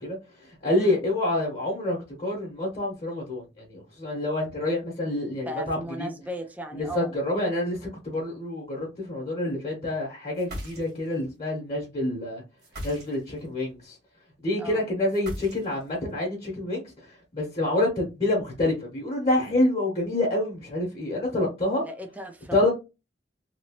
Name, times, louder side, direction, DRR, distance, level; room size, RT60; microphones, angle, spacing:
voice 1, 0.0-6.1 6.7-12.4 12.8-14.0 14.4-21.8 22.5-22.7, left 1 dB, 35° left, 1.1 m, -27 dB
voice 2, 5.5-7.1 14.6-14.8 21.8-22.7, equal, 10° right, 0.5 m, -37 dB
sound 1, 10.3-11.2 12.6-13.5 15.1-16.0, equal, 60° right, 1.4 m, -38 dB
2.9 x 2.7 x 2.9 m
head